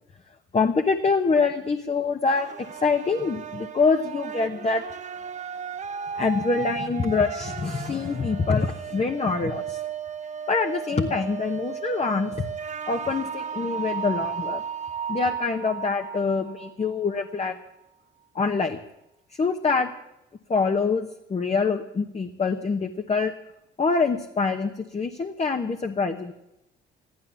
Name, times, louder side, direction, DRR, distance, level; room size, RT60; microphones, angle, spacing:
voice 1, 0.5-4.8 6.2-9.8 10.5-12.5 12.9-14.6 15.1-17.6 18.3-18.8 19.4-19.9 20.5-23.3 23.8-26.3, left 4 dB, 35° left, 5 dB, 1.1 m, -25 dB
sound 1, 2.3-17.3, right 7 dB, 35° right, 0.8 m, -35 dB
14.5 x 12.5 x 7.1 m, 0.89 s
cardioid pair, 90°, 20 cm